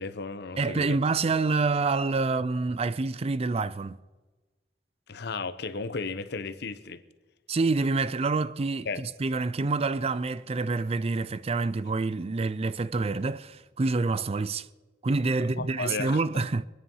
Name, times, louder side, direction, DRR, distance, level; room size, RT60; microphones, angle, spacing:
voice 1, 0.0-1.0 5.1-7.0 8.9-9.0 15.6-16.5, left 4 dB, 65° left, 0.9 m, -34 dB
voice 2, 0.6-4.0 7.5-14.7 15.0-16.6, right 3 dB, 35° right, 0.4 m, -27 dB
sound 1, 8.5-13.7, equal, 20° right, 6.0 m, -64 dB
24.0 x 9.9 x 5.5 m
head